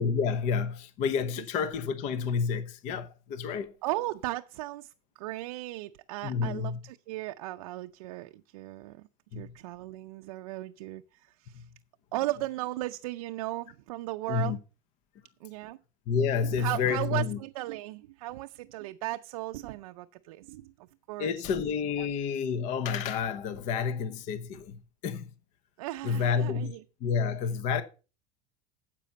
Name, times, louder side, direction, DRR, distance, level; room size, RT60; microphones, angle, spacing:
voice 1, 0.0-3.7 6.2-6.8 9.3-9.5 11.5-11.6 14.3-14.6 16.1-17.4 21.2-25.3 26.0-26.7 27.0-27.8, left 6 dB, 40° left, 1.0 m, -29 dB
voice 2, 3.8-9.0 9.3-11.7 12.1-14.6 15.4-15.8 16.5-20.7 21.1-21.3 22.0-22.1 25.8-26.8, right 17 dB, 90° right, 0.5 m, -36 dB
10.0 x 7.6 x 5.4 m
supercardioid pair, 165°, 18 cm